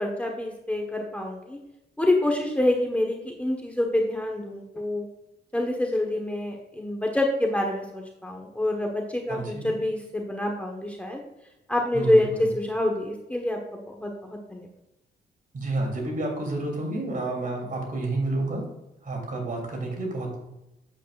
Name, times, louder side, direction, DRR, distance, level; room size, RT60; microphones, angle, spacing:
voice 1, 0.0-1.6 2.0-5.0 5.5-11.2 11.7-14.7, left 1 dB, 5° left, 0 dB, 1.3 m, -26 dB
voice 2, 9.3-9.7 11.9-12.2 15.5-18.6 19.0-20.4, right 2 dB, 50° right, 0 dB, 3.0 m, -30 dB
8.9 x 7.9 x 2.5 m, 0.90 s
cardioid pair, 90°, 18 cm